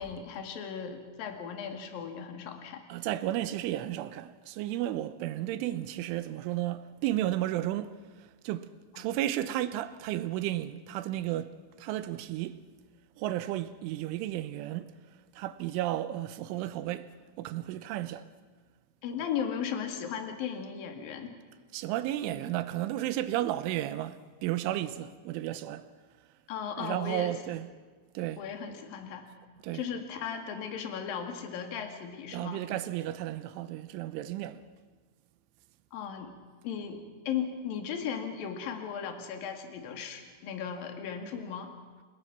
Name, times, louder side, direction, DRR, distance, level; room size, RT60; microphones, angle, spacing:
voice 1, 0.0-2.8 8.9-9.1 19.0-21.4 26.5-27.4 28.4-29.2 29.7-32.6 35.9-36.3 36.6-41.7, left 7 dB, 55° left, 3.4 m, -36 dB
voice 2, 2.9-8.0 8.5-8.7 9.0-12.6 13.2-14.9 15.4-17.1 17.4-18.2 21.7-24.2 24.4-25.8 26.8-27.7 28.2-28.4 29.6-29.8 32.3-34.6, right 13 dB, 85° right, 3.4 m, -33 dB
28.5 x 19.0 x 6.0 m
omnidirectional pair, 5.5 m